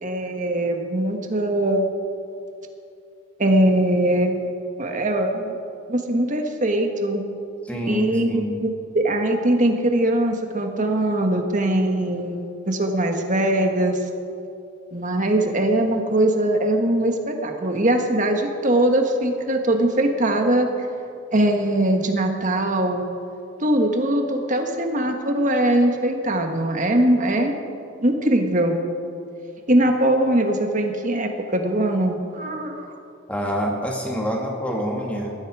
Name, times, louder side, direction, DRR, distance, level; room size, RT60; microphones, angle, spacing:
voice 1, 0.0-1.9 3.4-4.5 4.8-5.6 5.9-7.2 7.9-14.0 14.9-20.7 21.3-23.1 23.6-27.6 28.0-28.8 29.7-32.9, right 1 dB, 40° right, 4 dB, 1.6 m, -21 dB
voice 2, 7.6-8.6 33.3-35.4, equal, 5° left, -1 dB, 2.3 m, -26 dB
19.5 x 13.5 x 4.9 m, 2.5 s
head